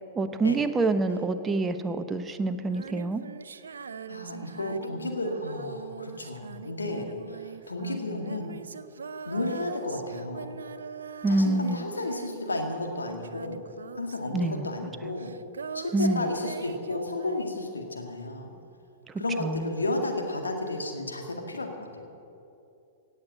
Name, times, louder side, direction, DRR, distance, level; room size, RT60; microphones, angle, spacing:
voice 1, 0.2-3.2 11.2-11.9 14.3-14.6 15.9-16.3 19.4-19.7, right 2 dB, 15° right, 9 dB, 0.9 m, -26 dB
Female singing, 2.6-18.0 19.5-19.6, right 6 dB, 75° right, 0.5 m, -42 dB
voice 2, 4.1-8.6 9.3-10.5 11.3-13.6 14.0-15.3 15.7-18.5 19.2-22.1, left 2 dB, 80° left, 2 dB, 2.0 m, -32 dB
17.0 x 8.1 x 7.6 m, 2.7 s
figure-of-eight pair, 105°, 0 cm